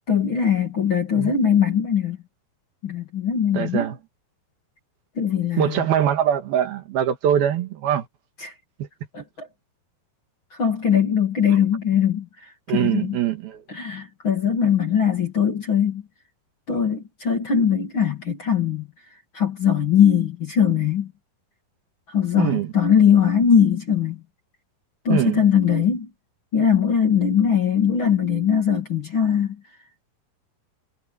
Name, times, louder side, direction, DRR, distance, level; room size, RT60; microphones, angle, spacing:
voice 1, 0.1-2.2 2.8-3.9 5.2-5.8 8.4-8.5 9.1-9.5 10.6-12.3 12.7-13.2 13.7-16.0 16.7-18.9 19.3-21.1 22.1-24.2 25.0-26.1 26.5-29.6, left 8 dB, 35° left, 2.6 m, -20 dB
voice 2, 3.5-4.0 5.6-8.1 8.8-8.9 12.7-13.6 22.4-22.7 25.1-25.5, right 10 dB, 70° right, 3.3 m, -23 dB
omnidirectional pair, 4.7 m